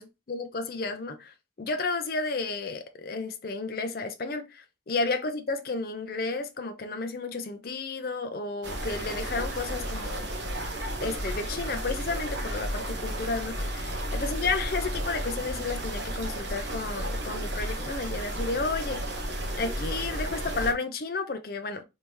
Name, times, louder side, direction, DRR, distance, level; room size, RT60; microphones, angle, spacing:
voice 1, 0.0-10.3 11.0-19.3 19.5-21.8, left 3 dB, 55° left, 0.5 m, -32 dB
sound 1, 8.6-20.7, right 1 dB, 75° right, 0.9 m, -33 dB
3.4 x 2.7 x 3.0 m
head